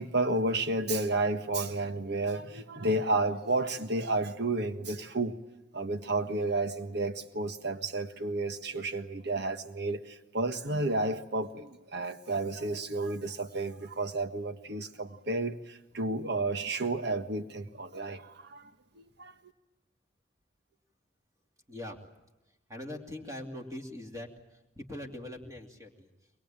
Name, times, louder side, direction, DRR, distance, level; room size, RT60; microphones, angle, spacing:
voice 1, 0.0-5.3 5.7-18.7 18.9-19.3, right 2 dB, 60° right, 1.5 m, -31 dB
voice 2, 22.7-24.3 24.8-26.1, left 1 dB, 20° right, 2.6 m, -41 dB
23.0 x 22.0 x 8.9 m
head